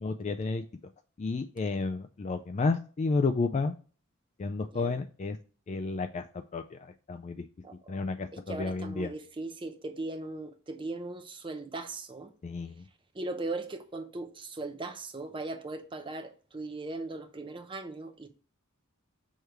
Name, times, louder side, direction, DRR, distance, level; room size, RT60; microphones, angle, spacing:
voice 1, 0.0-0.6 1.2-3.7 4.4-5.4 5.7-6.2 6.5-6.8 7.1-7.5 7.9-9.1 12.4-12.8, left 3 dB, 30° left, 0.3 m, -31 dB
voice 2, 4.6-5.0 7.6-7.7 8.3-12.3 13.1-18.3, right 2 dB, 25° right, 0.7 m, -38 dB
6.5 x 3.3 x 4.5 m
head